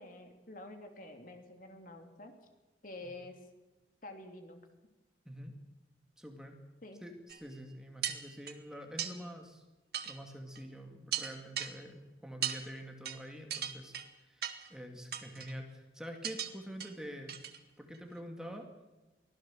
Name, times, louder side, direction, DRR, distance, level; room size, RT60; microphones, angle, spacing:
voice 1, 0.0-2.3 2.8-3.5 4.0-4.6 6.8-7.0, left 2 dB, 50° left, 5 dB, 3.0 m, -48 dB
voice 2, 6.2-6.6 7.0-9.6 10.0-13.9 14.2-17.4 17.8-18.7, equal, 5° right, 3 dB, 2.3 m, -46 dB
sound 1, 7.3-7.4 8.0-8.6 9.0-9.1 9.9-10.2 10.6-10.7 11.1-11.7 12.4-12.6 13.1-13.2 13.5-14.1 14.4-14.7 15.1-15.5 16.2-16.5 16.8-16.9 17.3-17.6 17.9-18.0, right 10 dB, 60° right, 1.8 m, -37 dB
24.0 x 16.5 x 7.6 m, 1.1 s
head